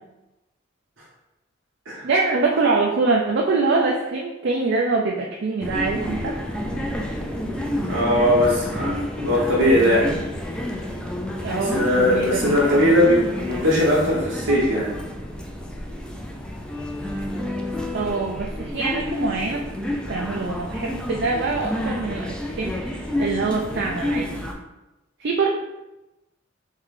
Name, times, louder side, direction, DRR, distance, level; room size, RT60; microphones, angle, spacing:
voice 1, 2.0-6.4 11.4-12.8 17.9-19.6 20.1-24.4 25.2-25.5, right 3 dB, 60° right, 0 dB, 0.4 m, -24 dB
sound 1, 5.6-24.5, left 1 dB, 5° left, 0.4 m, -29 dB
voice 2, 7.8-10.1 11.7-14.9, equal, 85° right, -6 dB, 1.1 m, -19 dB
3.6 x 3.2 x 3.7 m, 0.98 s
head